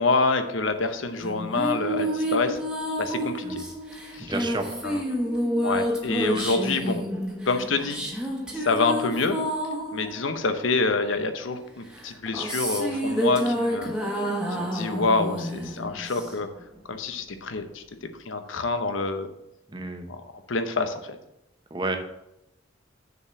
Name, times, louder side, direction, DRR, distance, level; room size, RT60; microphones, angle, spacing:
voice 1, 0.0-2.6 3.0-3.6 4.1-4.3 4.8-5.0 5.6-7.0 7.5-8.0 8.5-9.4 9.9-13.9 14.6-16.5 16.9-17.8 18.2-19.3 20.1-20.2 20.5-21.2, left 3 dB, 80° left, 8 dB, 0.8 m, -26 dB
sound 1, 1.2-11.1 11.9-16.6, equal, 5° right, 1.2 m, -29 dB
voice 2, 4.2-4.7 6.4-6.5 19.7-20.1 21.7-22.0, right 2 dB, 25° right, 5 dB, 0.9 m, -31 dB
6.6 x 4.7 x 6.9 m, 0.85 s
head